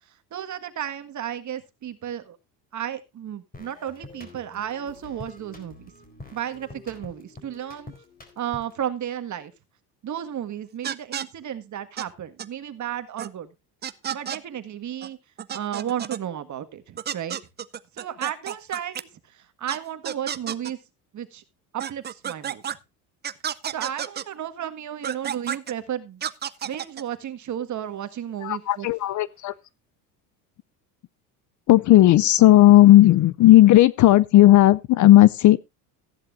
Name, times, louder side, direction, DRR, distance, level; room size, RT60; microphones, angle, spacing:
voice 1, 0.3-2.4 2.7-5.9 6.3-7.9 8.4-9.5 10.0-13.5 14.1-15.2 15.5-17.4 17.9-20.8 21.1-21.4 21.7-22.8 23.7-26.2 26.6-28.9, right 10 dB, 40° right, 1.7 m, -33 dB
sound 1, 3.5-8.9, left 2 dB, 20° left, 4.2 m, -46 dB
sound 2, 10.8-11.3 12.0-12.1 12.4-12.5 13.2-13.3 13.8-14.4 15.0-15.1 15.4-16.2 17.0-19.0 19.7-19.8 20.0-20.7 21.8-22.8 23.2-24.2 25.0-25.7 26.2-27.0, right 9 dB, 25° right, 0.5 m, -31 dB
voice 2, 28.4-29.5 31.7-35.6, left 15 dB, 45° left, 0.6 m, -14 dB
15.0 x 11.0 x 2.5 m
supercardioid pair, 95°, 43 cm